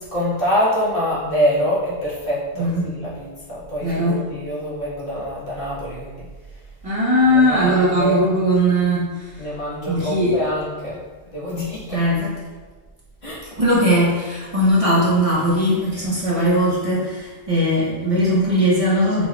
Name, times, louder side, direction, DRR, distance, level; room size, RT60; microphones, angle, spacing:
voice 1, 0.1-6.3 7.3-8.3 9.4-11.0 11.3-12.0 13.2-13.4, equal, 55° left, -8 dB, 1.6 m, -25 dB
voice 2, 2.6-2.9 3.8-4.2 6.8-9.4 9.9-10.4 11.9-12.3 13.5-19.2, equal, 35° right, -7 dB, 1.1 m, -19 dB
5.1 x 4.2 x 2.4 m, 1.3 s
omnidirectional pair, 1.1 m